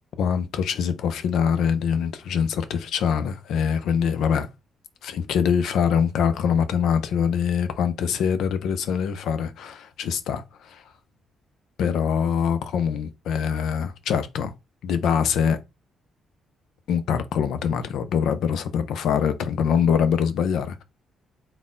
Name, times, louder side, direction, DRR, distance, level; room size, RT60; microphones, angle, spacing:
voice 1, 0.2-4.5 5.0-10.8 11.8-14.5 14.8-15.6 16.9-20.8, left 7 dB, 75° left, 0.5 m, -24 dB
4.0 x 2.1 x 3.8 m
cardioid pair, 90°, 0 cm